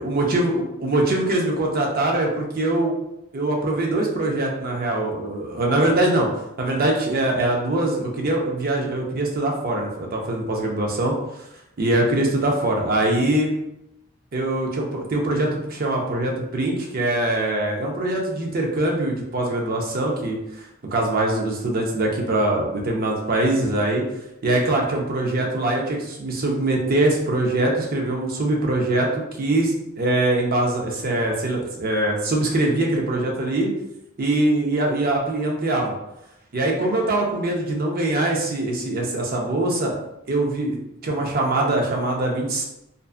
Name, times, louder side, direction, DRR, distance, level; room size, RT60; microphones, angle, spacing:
voice 1, 0.0-2.9 3.3-6.3 6.6-11.2 11.8-13.5 14.3-24.0 24.4-29.1 29.4-33.7 34.2-35.9 36.5-39.9 40.3-40.8 41.0-42.6, right 2 dB, 45° right, 0 dB, 0.5 m, -23 dB
2.5 x 2.3 x 2.4 m, 0.86 s
head